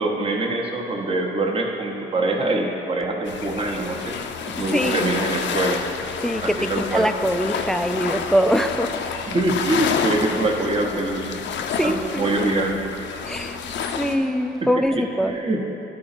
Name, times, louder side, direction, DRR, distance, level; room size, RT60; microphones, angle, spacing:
voice 1, 0.0-4.2 4.5-5.8 6.4-7.1 9.3-11.4 11.8-12.8 14.6-15.6, right 2 dB, 25° right, 0 dB, 0.8 m, -24 dB
sound 1, 3.2-14.2, left 6 dB, 65° left, 0.5 m, -29 dB
voice 2, 4.7-5.0 6.2-8.9 11.7-12.2 13.2-15.3, equal, ahead, 8 dB, 0.3 m, -23 dB
11.5 x 3.9 x 4.2 m, 2.9 s
cardioid pair, 90°, 20 cm